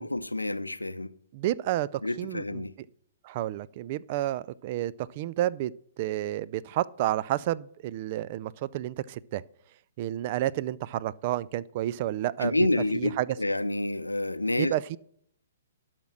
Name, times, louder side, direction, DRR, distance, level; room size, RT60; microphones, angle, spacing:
voice 1, 0.0-1.1 2.0-2.7 12.4-15.0, left 2 dB, 90° left, 0.5 m, -29 dB
voice 2, 1.3-2.7 3.2-5.7 6.0-9.4 10.0-12.6 12.9-13.3 14.6-15.0, right 13 dB, 40° right, 0.4 m, -30 dB
12.0 x 5.9 x 6.3 m
figure-of-eight pair, 120°, 0 cm